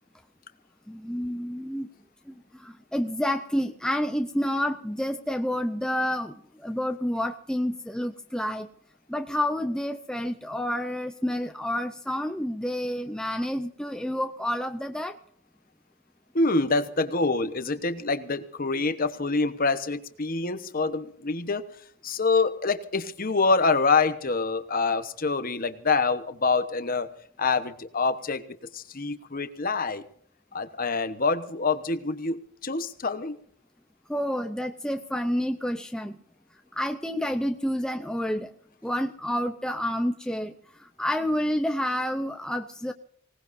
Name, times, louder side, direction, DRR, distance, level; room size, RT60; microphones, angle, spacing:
voice 1, 0.9-1.9 2.3-6.3 6.6-8.7 9.1-15.2 34.1-36.2 36.7-38.5 38.8-40.5 40.8-42.9, equal, 5° left, 5 dB, 0.6 m, -29 dB
voice 2, 16.3-21.6 22.0-27.1 27.4-28.4 28.7-30.0 30.5-33.4, left 4 dB, 40° left, 10 dB, 1.1 m, -26 dB
25.0 x 18.5 x 2.6 m, 0.63 s
head